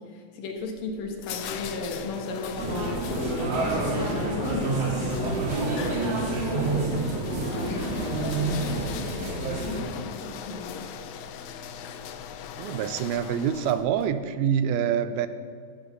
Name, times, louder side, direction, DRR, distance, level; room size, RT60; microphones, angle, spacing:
voice 1, 0.0-3.4 4.0-5.4 6.0-7.0 7.3-10.9, left 3 dB, 70° left, 3 dB, 3.1 m, -36 dB
sound 1, 0.6-14.1, left 8 dB, 90° left, 1.6 m, -39 dB
sound 2, 2.6-9.8, right 2 dB, 45° right, 2.8 m, -28 dB
voice 2, 12.6-15.3, right 8 dB, 85° right, 11 dB, 2.5 m, -26 dB
16.0 x 6.7 x 6.9 m, 2.1 s
omnidirectional pair, 4.3 m